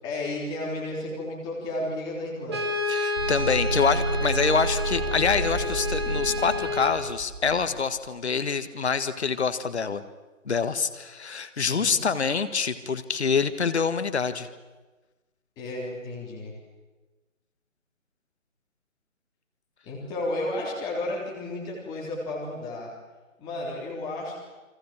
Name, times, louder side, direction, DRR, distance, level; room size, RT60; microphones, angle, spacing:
voice 1, 0.0-2.6 11.5-12.0 15.6-16.5 19.8-22.9 23.4-24.4, left 1 dB, 10° left, -3 dB, 3.4 m, -33 dB
Brass instrument, 2.5-7.1, left 3 dB, 20° right, 2.3 m, -30 dB
voice 2, 2.9-10.0 10.4-14.5, left 5 dB, 50° left, 11 dB, 1.6 m, -26 dB
sound 1, 3.2-8.1, right 3 dB, 50° right, 5.1 m, -30 dB
29.5 x 24.5 x 7.5 m, 1.2 s
figure-of-eight pair, 155°, 41 cm